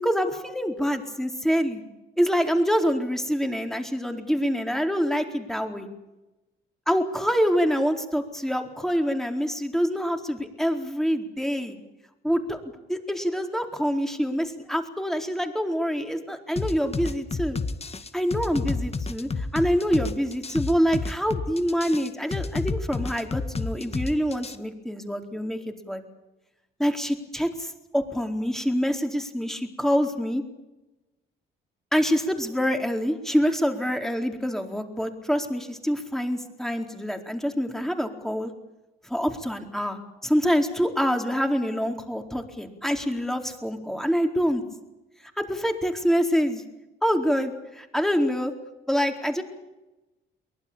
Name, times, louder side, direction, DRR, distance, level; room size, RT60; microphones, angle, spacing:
voice 1, 0.0-1.8 2.2-5.9 6.9-11.8 12.2-12.6 12.9-17.6 18.1-26.0 26.8-30.4 31.9-38.5 39.0-44.6 45.4-46.6 47.0-48.5 48.9-49.4, equal, ahead, 5 dB, 4.3 m, -26 dB
sound 1, 16.6-24.6, left 4 dB, 30° left, 1.9 m, -30 dB
23.5 x 20.5 x 8.9 m, 1.0 s
cardioid pair, 90°, 20 cm